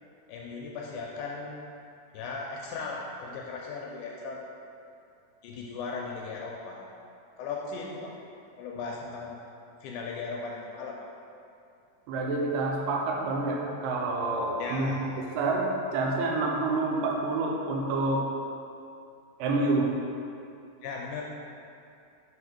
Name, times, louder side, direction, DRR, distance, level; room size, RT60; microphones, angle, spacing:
voice 1, 0.3-1.6 2.1-4.4 5.4-6.8 7.4-8.1 8.6-9.3 9.8-11.0 14.6-15.2 20.8-21.2, left 4 dB, 80° left, -1 dB, 1.8 m, -37 dB
voice 2, 12.1-18.3 19.4-19.9, right 2 dB, 85° right, -1 dB, 2.3 m, -28 dB
4.7 x 4.6 x 5.0 m, 2.6 s
omnidirectional pair, 3.9 m